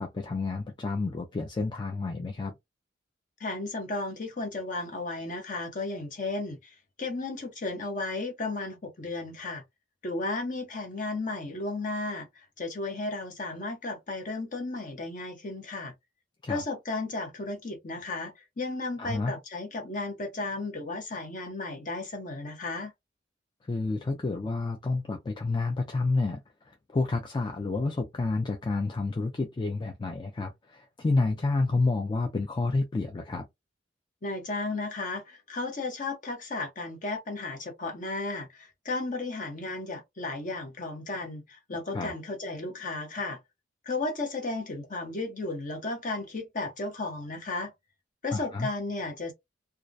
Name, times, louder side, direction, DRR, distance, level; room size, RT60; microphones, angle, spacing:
voice 1, 0.0-2.5 16.4-16.6 19.0-19.3 23.7-33.5 41.9-42.1 48.3-48.7, left 3 dB, 25° left, 0.3 m, -29 dB
voice 2, 3.4-9.6 10.0-15.9 16.5-22.9 34.2-43.4 43.8-47.7 48.2-49.3, left 2 dB, 40° left, 0.8 m, -34 dB
2.3 x 2.1 x 2.5 m
head